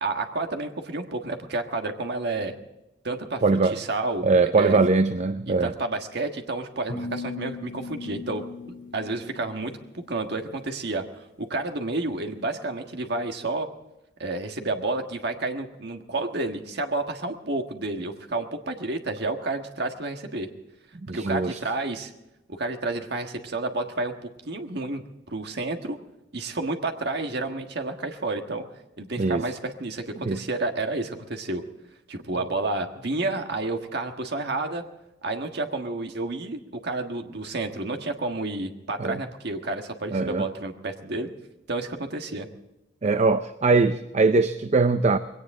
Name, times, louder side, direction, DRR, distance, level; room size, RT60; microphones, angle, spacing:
voice 1, 0.0-2.5 3.0-4.8 5.5-11.0 11.4-13.7 14.2-20.5 21.1-22.1 22.5-24.1 24.4-26.0 26.3-28.6 29.0-31.6 32.1-34.8 35.2-41.3 41.7-42.5, right 2 dB, 65° right, 5 dB, 1.5 m, -30 dB
voice 2, 3.4-3.8 4.2-5.7 21.1-21.6 29.2-29.4 30.2-30.4 39.0-39.2 40.1-40.5 43.0-45.2, right 3 dB, 40° right, 11 dB, 0.5 m, -21 dB
sound 1, 6.9-10.0, left 4 dB, 90° left, 2.0 m, -38 dB
21.5 x 17.5 x 3.7 m, 0.96 s
head